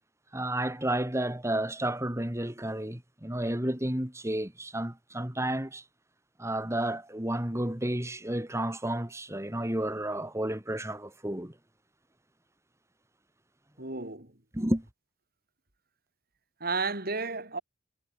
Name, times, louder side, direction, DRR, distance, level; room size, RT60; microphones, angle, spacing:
voice 1, 0.3-5.8 6.4-11.5 13.9-14.0 14.5-14.9, right 1 dB, 15° right, 2.4 m, -31 dB
voice 2, 13.8-14.3 16.6-17.6, right 4 dB, 50° right, 4.8 m, -32 dB
head